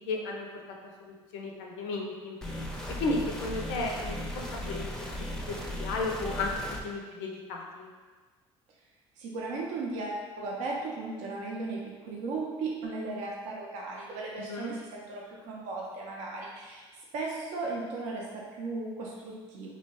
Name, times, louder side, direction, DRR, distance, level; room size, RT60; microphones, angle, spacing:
voice 1, 0.1-0.5 1.0-2.4 3.0-4.8 5.5-6.5 6.8-7.9 14.5-14.7, left 3 dB, 75° left, 1 dB, 0.4 m, -34 dB
sound 1, 2.4-6.8, left 1 dB, 5° left, 0.5 m, -37 dB
voice 2, 9.2-16.8 17.1-19.7, right 3 dB, 70° right, -2 dB, 0.5 m, -36 dB
2.7 x 2.1 x 2.9 m, 1.4 s
hypercardioid pair, 65°, 14 cm